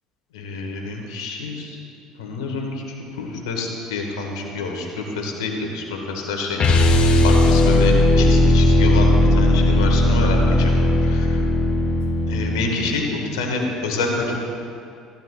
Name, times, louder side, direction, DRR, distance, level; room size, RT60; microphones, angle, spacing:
voice 1, 0.3-1.8 2.2-6.6 7.2-11.4 12.3-14.3, left 3 dB, 85° left, 1 dB, 1.4 m, -27 dB
sound 1, 6.6-12.7, left 1 dB, 45° left, 1.1 m, -16 dB
13.5 x 12.5 x 2.3 m, 2.5 s
hypercardioid pair, 70°, 2 cm